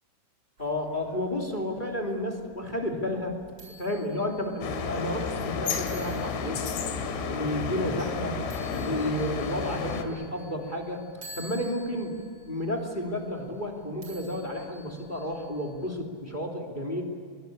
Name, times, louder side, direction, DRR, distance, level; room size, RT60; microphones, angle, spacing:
voice 1, 0.6-3.3 3.8-6.7 7.3-8.4 8.7-11.0 11.3-12.1 12.4-17.0, left 1 dB, 15° left, 2 dB, 1.8 m, -31 dB
sound 1, 0.6-15.9, right 1 dB, 20° right, 7.9 m, -51 dB
sound 2, 4.6-10.0, left 5 dB, 70° left, 4.3 m, -32 dB
24.0 x 22.5 x 8.7 m, 2.2 s
omnidirectional pair, 5.5 m